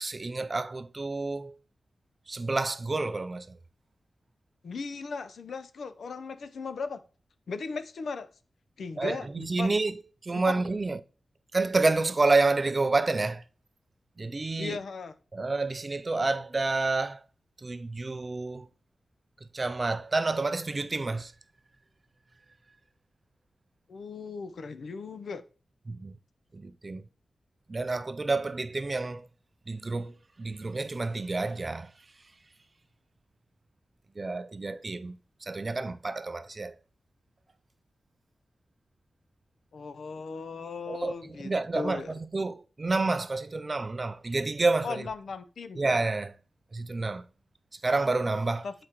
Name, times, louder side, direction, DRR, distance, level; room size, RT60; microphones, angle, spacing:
voice 1, 0.0-1.5 2.3-3.6 9.0-11.0 11.5-13.4 14.2-14.8 15.3-17.2 17.6-18.7 19.5-21.3 25.9-26.1 26.5-27.0 27.7-29.3 29.7-31.9 34.2-36.8 40.9-45.1 45.8-46.4 46.7-47.2 47.7-48.7, right 3 dB, 35° right, 0.4 m, -29 dB
voice 2, 4.6-7.0 7.5-8.3 8.8-9.7 10.3-10.5 14.6-15.1 23.9-25.4 39.7-42.2 44.8-45.8 48.6-48.7, left 4 dB, 80° left, 0.5 m, -37 dB
7.7 x 4.8 x 2.9 m
wide cardioid pair, 95°, 0 cm